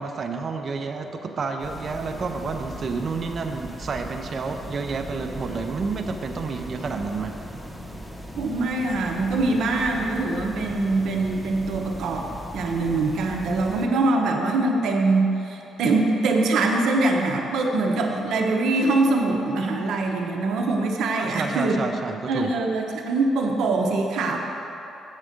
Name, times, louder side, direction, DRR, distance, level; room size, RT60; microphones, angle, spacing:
voice 1, 0.0-7.3 21.1-22.5, right 4 dB, 45° right, 4 dB, 0.6 m, -30 dB
sound 1, 1.6-13.9, equal, 10° left, 0.8 m, -38 dB
voice 2, 8.4-12.3 12.5-21.8 22.3-24.4, right 2 dB, 80° right, 2 dB, 0.8 m, -23 dB
7.4 x 6.5 x 5.1 m, 3.0 s
cardioid pair, 90°, 0 cm